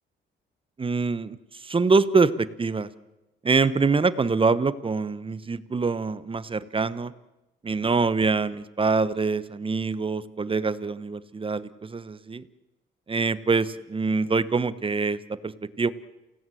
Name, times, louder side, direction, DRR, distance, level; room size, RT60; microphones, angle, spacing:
voice 1, 0.8-2.9 3.4-7.1 7.6-12.4 13.1-15.9, right 4 dB, 25° right, 15 dB, 1.1 m, -25 dB
28.5 x 17.5 x 7.9 m, 1.0 s
cardioid pair, 90°, 20 cm